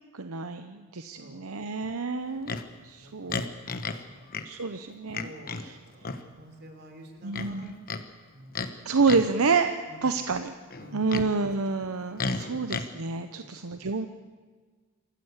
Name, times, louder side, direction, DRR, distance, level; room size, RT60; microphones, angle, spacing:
voice 1, 0.1-2.6 2.8-3.5 4.4-5.8 7.2-7.7 8.8-10.5 10.9-14.1, right 4 dB, 75° right, 8 dB, 0.8 m, -28 dB
voice 2, 1.2-1.5 2.9-4.3 4.6-4.8 5.2-8.0 8.3-8.5 9.9-10.1 10.8-11.5 12.4-12.6 13.3-13.9, right 1 dB, 45° right, 4 dB, 3.6 m, -50 dB
Livestock farm animals working animals, 2.5-2.7 3.3-4.0 4.3-4.5 5.1-5.7 6.0-6.2 7.3-8.0 8.5-8.7 9.0-9.4 10.7-11.3 12.2-12.9, left 4 dB, 40° left, 1.1 m, -33 dB
27.0 x 14.5 x 8.1 m, 1.5 s
head